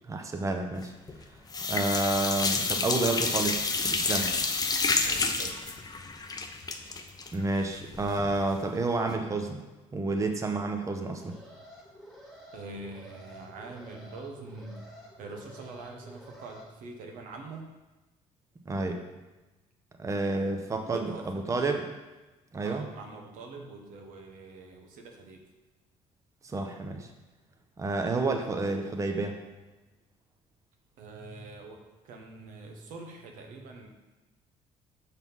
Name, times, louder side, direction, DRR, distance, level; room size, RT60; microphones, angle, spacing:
voice 1, 0.1-0.9 1.7-4.3 6.9-7.0 7.3-9.6 9.9-11.4 18.7-19.0 20.0-21.8 22.5-22.9 26.4-27.1 27.8-29.4, right 3 dB, 20° right, 4 dB, 0.7 m, -30 dB
sound 1, 0.8-1.2 1.5-8.4 8.7-8.8 9.1-9.2, left 4 dB, 30° left, 0.7 m, -29 dB
voice 2, 5.0-5.8 12.5-14.9 15.2-17.7 20.5-21.2 22.6-25.4 31.0-31.8 32.0-33.9, right 3 dB, 80° right, 2 dB, 1.1 m, -44 dB
Alarm, 11.0-16.6, equal, ahead, 1.6 m, -50 dB
6.0 x 4.2 x 5.4 m, 1.1 s
cardioid pair, 90°, 14 cm